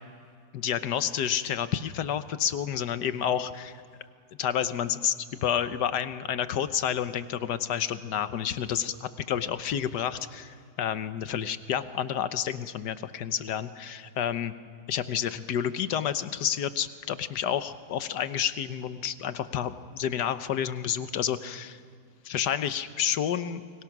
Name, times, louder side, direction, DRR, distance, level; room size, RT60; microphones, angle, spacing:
voice 1, 0.5-3.8 4.4-5.2 5.4-14.5 14.9-21.8 22.2-23.6, left 9 dB, 75° left, 12 dB, 1.5 m, -30 dB
30.0 x 22.5 x 6.0 m, 2.2 s
omnidirectional pair, 1.8 m